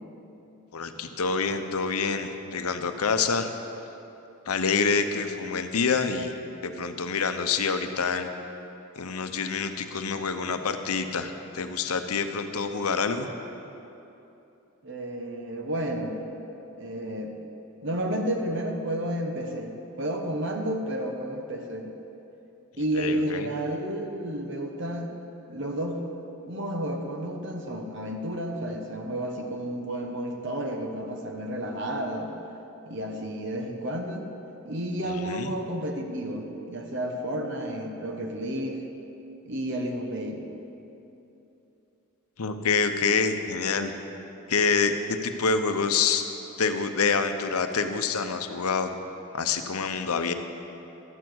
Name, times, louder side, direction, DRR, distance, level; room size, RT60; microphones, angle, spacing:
voice 1, 0.7-3.5 4.5-6.3 6.6-8.3 9.0-13.3 22.9-23.5 35.2-35.5 42.4-43.9 44.5-46.2 46.6-48.9 49.3-50.3, left 5 dB, 80° left, 8 dB, 0.8 m, -27 dB
voice 2, 14.8-16.2 16.8-17.4 17.8-21.9 22.8-25.1 25.5-26.0 26.4-32.3 32.8-34.3 34.6-38.8 39.4-40.5, right 1 dB, 55° right, 3 dB, 1.0 m, -31 dB
12.0 x 7.0 x 7.9 m, 2.9 s
head